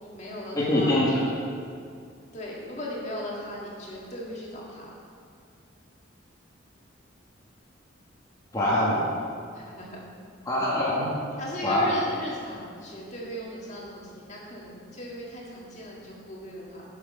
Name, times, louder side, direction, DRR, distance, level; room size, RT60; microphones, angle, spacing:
voice 1, 0.0-1.1 2.3-5.0 9.5-10.0 11.4-16.8, equal, 35° left, -4 dB, 1.8 m, -37 dB
voice 2, 0.5-1.2 8.5-9.0 10.4-11.2 11.6-11.9, left 1 dB, 20° left, -7 dB, 1.6 m, -24 dB
12.5 x 6.3 x 5.0 m, 2.3 s
head